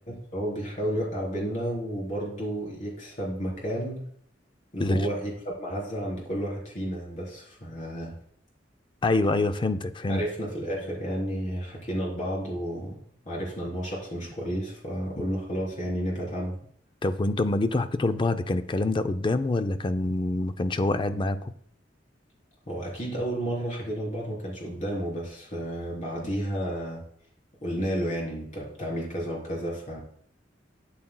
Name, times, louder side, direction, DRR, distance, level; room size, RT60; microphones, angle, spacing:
voice 1, 0.1-4.0 4.7-8.1 10.1-13.0 13.3-16.6 22.7-27.0 27.6-30.0, equal, 40° left, -3 dB, 3.5 m, -31 dB
voice 2, 9.0-10.2 17.0-21.4, left 2 dB, 25° left, 10 dB, 0.4 m, -25 dB
12.5 x 7.3 x 2.2 m, 0.64 s
head